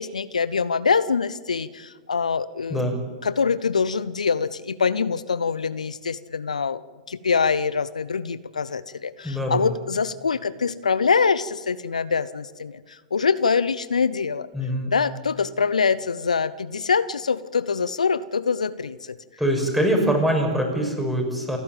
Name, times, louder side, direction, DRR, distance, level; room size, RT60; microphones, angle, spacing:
voice 1, 0.0-6.8 7.1-14.5 14.9-19.2, left 5 dB, 80° left, 16 dB, 0.7 m, -24 dB
voice 2, 9.2-9.7 14.5-14.9 19.4-21.6, right 1 dB, ahead, 2 dB, 6.3 m, -23 dB
28.5 x 12.0 x 9.1 m, 1.5 s
figure-of-eight pair, 105°, 4 cm